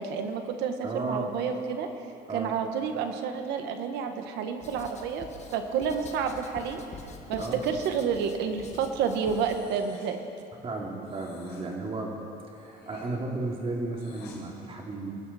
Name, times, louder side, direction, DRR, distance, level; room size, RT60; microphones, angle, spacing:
voice 1, 0.0-1.9 2.3-6.8 7.3-10.2, right 6 dB, 85° right, 6 dB, 1.3 m, -30 dB
voice 2, 0.8-1.3 2.3-2.5 7.4-7.6 10.6-12.1 12.5-15.1, right 2 dB, 35° right, -1 dB, 2.8 m, -34 dB
Writing, 4.6-9.6, left 4 dB, 40° left, 1.6 m, -46 dB
Breathing, 9.2-10.2 11.0-11.7 12.5-14.4, left 5 dB, 75° left, 4.6 m, -52 dB
23.0 x 12.5 x 4.2 m, 2.6 s
cardioid pair, 110°, 17 cm